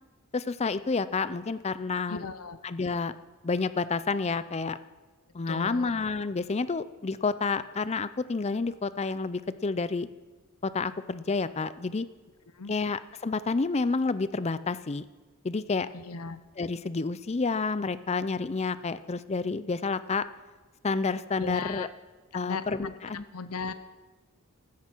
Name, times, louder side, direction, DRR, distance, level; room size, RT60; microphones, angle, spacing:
voice 1, 0.3-2.2 2.6-3.1 3.4-4.8 5.3-10.1 10.6-12.1 12.7-15.0 15.4-15.9 16.6-20.2 20.8-21.9 22.3-23.2, left 4 dB, 30° left, 15 dB, 0.5 m, -29 dB
voice 2, 2.1-2.6 5.5-6.0 12.6-12.7 15.9-16.4 21.4-21.9 22.3-23.0 23.3-23.7, left 4 dB, 85° left, 12 dB, 0.8 m, -37 dB
14.5 x 13.5 x 4.5 m, 1.3 s
head